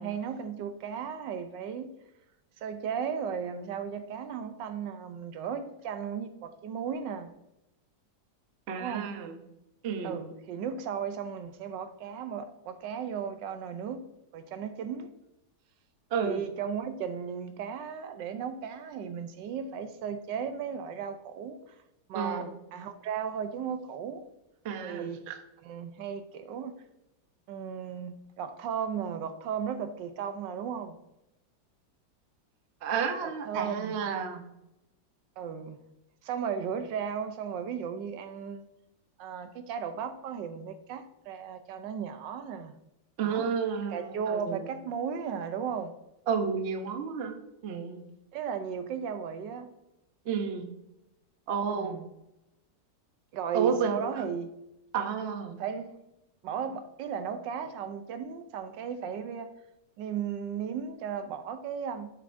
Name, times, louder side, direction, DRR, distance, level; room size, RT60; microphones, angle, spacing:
voice 1, 0.0-1.9 2.6-7.3 8.8-9.1 10.0-14.1 14.3-15.1 16.2-21.8 22.1-24.2 24.8-25.2 25.6-26.7 27.5-31.0 33.4-33.9 35.4-35.8 36.2-38.6 39.2-42.7 43.2-43.5 43.9-45.9 48.3-49.7 51.7-52.1 53.3-54.5 55.6-55.9 56.4-59.5 60.0-62.1, right 7 dB, 75° right, 1.2 m, -35 dB
voice 2, 8.7-9.4 9.8-10.1 16.1-16.4 22.1-22.5 24.6-25.3 32.8-34.4 43.2-44.6 46.3-47.3 47.6-48.0 50.3-50.7 51.5-52.0 53.5-54.0 54.9-55.5, right 6 dB, 55° right, 0.7 m, -31 dB
7.5 x 6.8 x 2.5 m
omnidirectional pair, 2.0 m